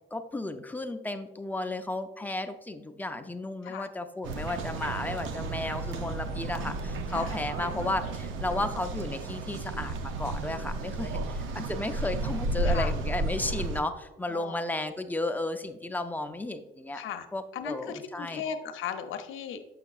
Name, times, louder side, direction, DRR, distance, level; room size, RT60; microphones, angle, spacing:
voice 1, 0.1-17.0 17.3-18.4, left 2 dB, 10° left, 7 dB, 0.5 m, -34 dB
sound 1, 4.2-13.8, right 2 dB, 85° right, 0.6 m, -33 dB
voice 2, 6.0-6.3 7.1-7.3 11.0-11.2 12.6-12.9 14.3-14.6 16.9-17.3 17.5-19.6, left 7 dB, 80° left, 8 dB, 0.6 m, -37 dB
6.9 x 5.7 x 2.4 m, 0.99 s
cardioid pair, 90°, 20 cm